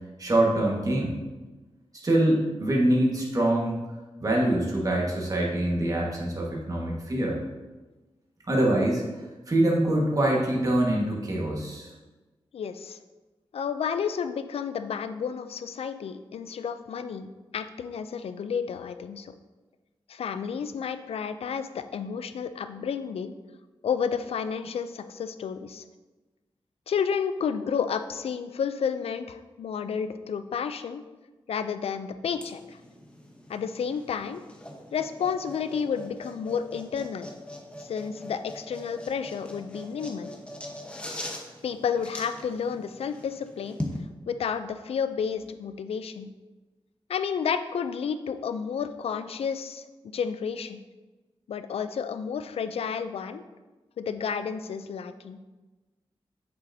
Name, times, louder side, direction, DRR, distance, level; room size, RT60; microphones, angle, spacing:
voice 1, 0.2-1.1 2.0-3.8 4.2-7.4 8.5-9.0 9.5-11.9, right 1 dB, 35° right, -2 dB, 1.6 m, -24 dB
voice 2, 12.5-13.0 13.5-19.3 20.1-23.3 23.8-25.8 26.9-31.0 31.5-32.8 33.5-34.4 34.9-37.3 37.8-40.3 41.6-43.8 44.3-46.3 47.1-49.9 50.1-50.8 51.5-53.4 54.0-55.4, left 6 dB, 85° left, 11 dB, 0.4 m, -31 dB
sound 1, 32.3-44.0, left 1 dB, 10° left, 1.0 m, -41 dB
7.9 x 6.8 x 2.7 m, 1.2 s
wide cardioid pair, 115°, 10 cm